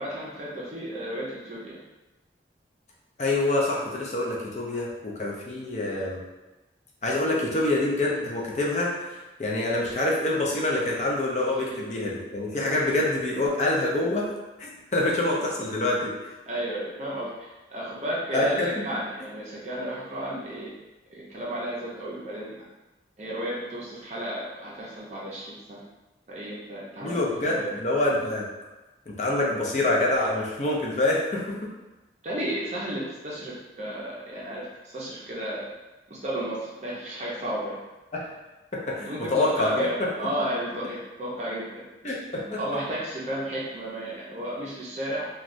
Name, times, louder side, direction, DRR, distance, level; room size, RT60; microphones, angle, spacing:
voice 1, 0.0-1.8 16.5-20.7 21.1-22.6 23.2-25.8 26.3-27.2 27.5-27.7 32.2-35.8 36.1-37.8 39.1-45.3, right 1 dB, 40° right, -6 dB, 0.5 m, -33 dB
voice 2, 3.2-6.2 7.0-8.9 9.4-14.3 14.6-16.1 18.3-18.7 27.0-28.5 29.1-31.6 38.1-38.3 38.7-40.1 42.0-42.6, left 2 dB, 40° left, -3 dB, 0.5 m, -26 dB
3.0 x 2.3 x 2.5 m, 1.1 s
head